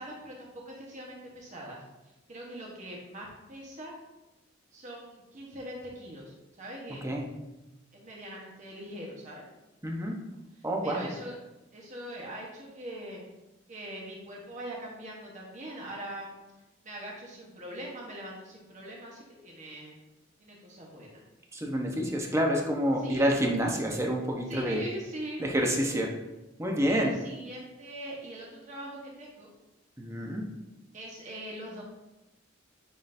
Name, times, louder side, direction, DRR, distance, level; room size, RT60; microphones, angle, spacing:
voice 1, 0.0-1.8 2.3-3.9 4.7-7.0 7.9-9.4 10.6-11.3 11.7-13.2 13.7-16.3 16.8-20.0 20.4-21.1 23.0-23.3 24.5-25.4 26.8-29.5 30.9-31.8, right 1 dB, 40° right, -3 dB, 1.1 m, -42 dB
voice 2, 9.8-10.2 10.6-11.1 21.5-24.8 25.4-26.1 26.6-27.1 30.0-30.4, equal, 15° right, 0 dB, 0.9 m, -28 dB
9.9 x 3.8 x 2.6 m, 1.0 s
head